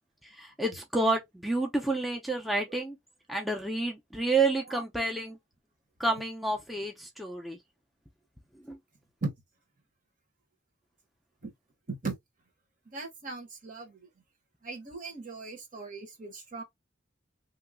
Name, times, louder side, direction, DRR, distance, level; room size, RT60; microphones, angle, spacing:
voice 1, 0.2-3.0 3.3-5.4 6.0-7.6 8.6-8.8, right 2 dB, ahead, 0.5 m, -29 dB
voice 2, 12.9-14.0 14.6-16.6, right 3 dB, 45° right, 1.0 m, -38 dB
3.0 x 2.1 x 3.6 m
head